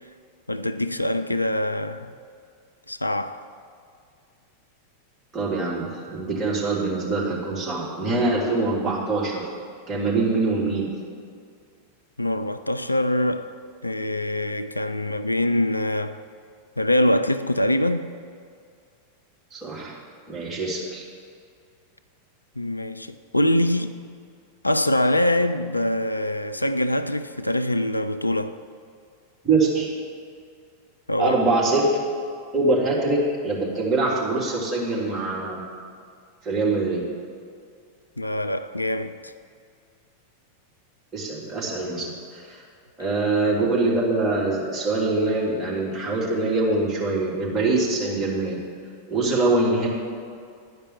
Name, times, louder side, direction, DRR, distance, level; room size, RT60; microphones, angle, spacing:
voice 1, 0.5-2.1 2.9-3.4 12.2-13.5 13.8-16.2 16.8-18.0 22.6-24.0 24.6-28.6 31.1-31.4 38.2-39.3, left 1 dB, 85° left, 0.3 m, -24 dB
voice 2, 5.3-9.4 9.9-10.9 19.5-20.0 20.3-21.0 29.4-29.9 31.2-32.0 32.5-35.6 36.4-37.0 41.1-42.6 43.0-48.6 49.1-49.9, right 3 dB, 15° right, 2.9 m, -24 dB
11.5 x 5.3 x 7.3 m
figure-of-eight pair, 90°, 0 cm